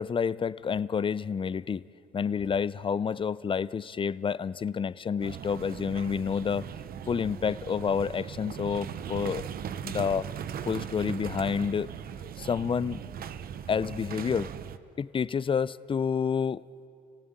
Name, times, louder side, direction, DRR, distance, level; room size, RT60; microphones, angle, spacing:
voice 1, 0.0-1.8 2.1-6.7 7.1-9.4 9.8-10.3 10.6-11.9 12.4-13.0 13.7-14.5 15.0-16.6, left 6 dB, 30° left, 19 dB, 0.6 m, -29 dB
sound 1, 5.2-14.8, right 8 dB, 55° right, 0.9 m, -39 dB
28.5 x 17.0 x 9.0 m, 2.7 s
supercardioid pair, 75°, 18 cm